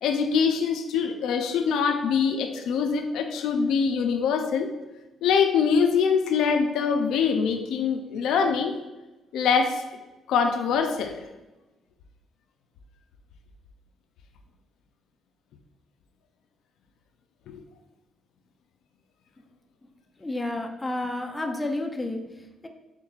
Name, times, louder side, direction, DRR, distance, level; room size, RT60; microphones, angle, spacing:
voice 1, 0.0-4.7 5.2-8.7 9.3-9.8 10.3-11.1 17.5-17.6, left 6 dB, 80° left, 5 dB, 0.4 m, -24 dB
voice 2, 20.2-22.7, left 2 dB, 15° left, 3 dB, 0.5 m, -31 dB
4.4 x 3.6 x 2.4 m, 1.1 s
cardioid pair, 90°, 0 cm